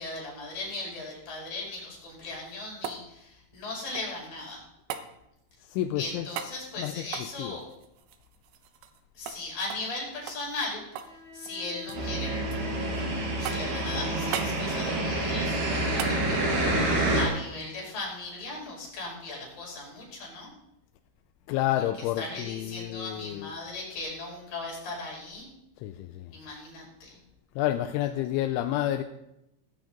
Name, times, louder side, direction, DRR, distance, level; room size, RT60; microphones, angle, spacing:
voice 1, 0.0-4.6 6.0-7.7 9.1-10.8 11.3-12.4 13.4-20.5 21.7-21.8 22.2-25.5 26.3-27.2, left 2 dB, 45° left, -3 dB, 6.7 m, -38 dB
sound 1, 2.2-4.3 4.9-5.1 6.3-6.6 7.1-9.0 9.3-9.4 9.7-9.9 10.3-11.2 11.5-12.1 12.5-13.0 13.5-13.8 14.3-14.6 16.0-16.2 18.6-18.7, right 9 dB, 80° right, 3.5 m, -38 dB
voice 2, 5.6-7.6 21.5-23.6 25.8-26.3 27.6-29.0, left 13 dB, 80° left, 7 dB, 2.9 m, -30 dB
sound 2, 10.9-14.4, left 3 dB, 25° right, 3.5 m, -41 dB
sound 3, 11.9-17.2, right 1 dB, 50° right, 5.2 m, -28 dB
18.0 x 14.5 x 3.9 m, 0.85 s
omnidirectional pair, 5.9 m